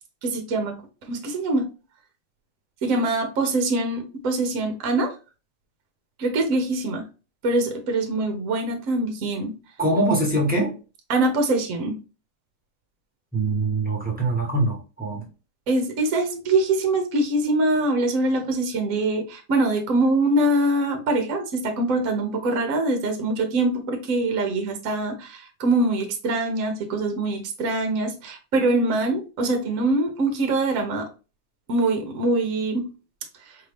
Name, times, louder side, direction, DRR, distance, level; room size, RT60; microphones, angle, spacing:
voice 1, 0.2-0.8 1.1-1.7 2.8-5.1 6.2-7.1 7.4-9.6 11.1-11.9 15.7-31.1 31.7-32.9, right 2 dB, 55° right, 4 dB, 1.0 m, -23 dB
voice 2, 9.8-10.7 13.3-15.2, right 2 dB, 5° right, -4 dB, 1.1 m, -23 dB
4.5 x 2.6 x 3.4 m, 0.32 s
omnidirectional pair, 2.0 m